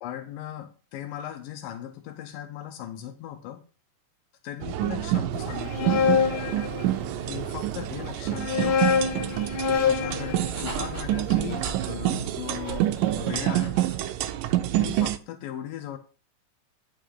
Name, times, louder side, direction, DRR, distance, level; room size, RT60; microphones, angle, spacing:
voice 1, 0.0-3.6 4.4-6.0 7.2-8.8 9.7-12.9 13.2-13.8 14.8-16.0, left 11 dB, 80° left, 6 dB, 2.4 m, -38 dB
sound 1, 4.6-15.2, right 13 dB, 85° right, 2.3 m, -27 dB
sound 2, 5.5-7.4 8.2-12.3, left 6 dB, 60° left, 1.5 m, -27 dB
Dog, 8.2-14.2, right 2 dB, 20° right, 5.5 m, -44 dB
10.5 x 5.7 x 3.8 m, 0.37 s
omnidirectional pair, 3.9 m